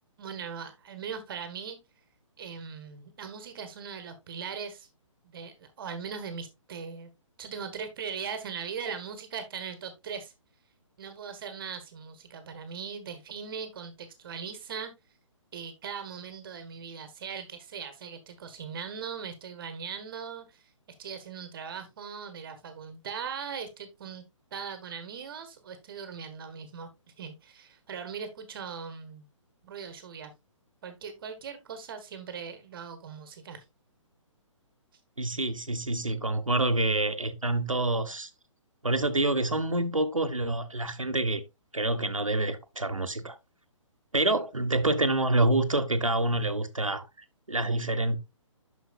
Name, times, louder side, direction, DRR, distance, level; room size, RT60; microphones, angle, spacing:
voice 1, 0.2-1.8 2.4-4.9 5.2-7.1 7.4-10.3 11.0-14.9 15.5-20.7 21.0-24.2 24.5-29.3 29.6-30.3 30.8-33.6, right 6 dB, 45° right, 1.3 m, -39 dB
voice 2, 35.2-38.3 38.8-41.4 41.7-43.4 44.1-47.1 47.5-48.2, right 2 dB, 90° right, 1.1 m, -27 dB
9.2 x 6.3 x 2.4 m
figure-of-eight pair, 130°, 17 cm